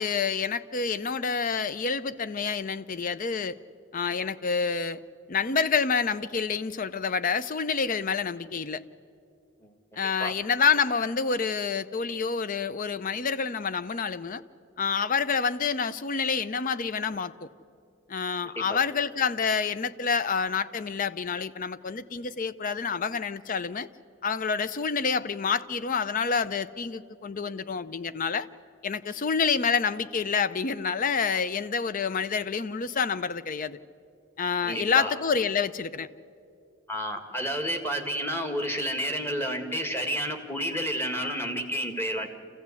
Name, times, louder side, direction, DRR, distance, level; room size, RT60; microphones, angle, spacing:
voice 1, 0.0-3.6 3.9-5.0 5.3-8.8 10.0-14.4 14.8-17.5 18.1-23.9 24.2-28.5 28.8-33.8 34.4-36.1, left 5 dB, 40° left, 15 dB, 0.5 m, -28 dB
voice 2, 9.6-10.3 18.4-18.8 34.6-35.1 36.9-42.3, equal, 10° left, 5 dB, 1.6 m, -31 dB
26.5 x 15.5 x 8.4 m, 2.4 s
head